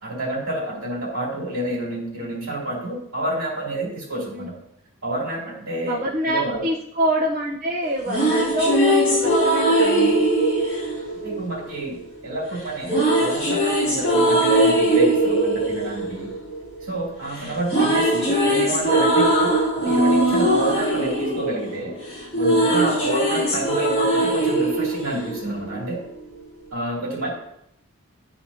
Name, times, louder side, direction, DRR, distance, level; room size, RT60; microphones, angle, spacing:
voice 1, 0.0-4.6 5.0-6.6 11.2-12.0 12.2-16.3 16.8-21.9 22.3-26.0 26.7-27.3, right 2 dB, 70° right, -4 dB, 2.8 m, -29 dB
voice 2, 5.9-10.3 17.4-17.6 23.3-23.5, right 1 dB, 40° right, -6 dB, 0.9 m, -26 dB
sound 1, 7.8-12.0 12.8-17.1 17.4-25.9, right 1 dB, 25° left, 2.6 m, -20 dB
12.0 x 4.2 x 2.8 m, 0.77 s
head